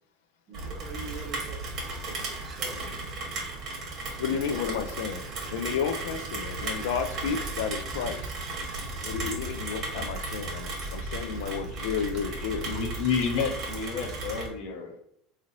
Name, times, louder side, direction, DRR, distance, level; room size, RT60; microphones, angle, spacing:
voice 1, 0.5-1.7 2.1-3.2, right 3 dB, 25° right, 2 dB, 0.7 m, -43 dB
Rain, 0.5-14.5, right 3 dB, 50° right, 1.1 m, -35 dB
voice 2, 4.2-5.2 5.5-8.3 9.0-12.7, left 7 dB, 85° left, 7 dB, 0.3 m, -32 dB
voice 3, 12.6-15.0, left 6 dB, 70° left, 1 dB, 0.9 m, -30 dB
3.8 x 3.0 x 2.6 m, 0.73 s
supercardioid pair, 135°, 0 cm